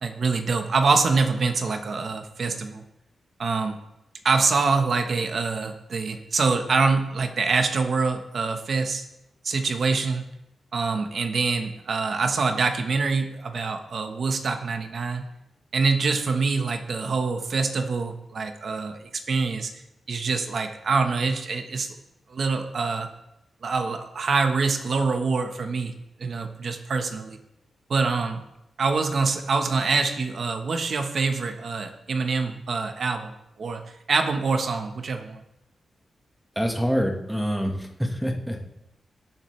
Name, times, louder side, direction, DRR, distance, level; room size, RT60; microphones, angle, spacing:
voice 1, 0.0-2.8 3.4-3.8 4.2-9.0 9.4-10.2 10.7-15.3 15.7-19.8 20.1-21.9 22.3-23.1 23.6-25.9 26.2-27.4 27.9-28.4 28.8-33.8 34.1-35.4, right 4 dB, 55° right, 6 dB, 1.2 m, -25 dB
voice 2, 36.5-38.6, equal, 5° right, 2 dB, 1.5 m, -26 dB
17.5 x 7.6 x 3.3 m, 0.85 s
wide cardioid pair, 120°, 0 cm